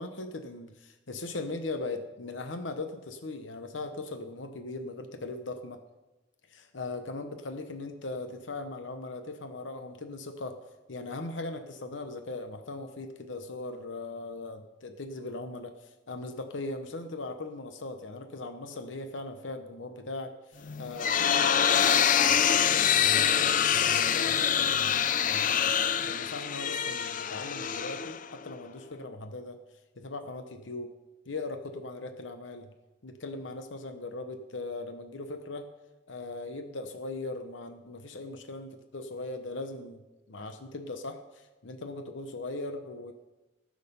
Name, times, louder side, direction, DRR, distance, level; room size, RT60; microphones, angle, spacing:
voice 1, 0.0-5.8 6.5-10.6 10.9-29.6 30.0-30.9 31.2-32.7 33.0-35.7 36.1-40.0 40.3-43.1, left 2 dB, 85° left, 7 dB, 0.9 m, -39 dB
sound 1, 20.6-28.5, left 8 dB, 45° left, 0.5 m, -25 dB
18.5 x 6.4 x 5.4 m, 1.1 s
head